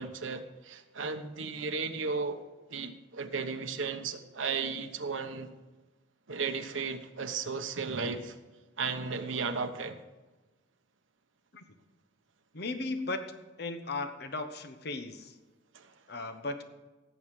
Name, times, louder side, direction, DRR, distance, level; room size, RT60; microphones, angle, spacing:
voice 1, 0.0-2.4 2.7-5.5 6.3-8.4 8.8-10.0 15.7-15.9, right 4 dB, 85° right, 7 dB, 1.1 m, -35 dB
voice 2, 12.5-13.2 13.6-15.3 16.1-16.7, left 3 dB, 55° left, 7 dB, 1.1 m, -36 dB
17.0 x 7.3 x 4.9 m, 1.2 s
head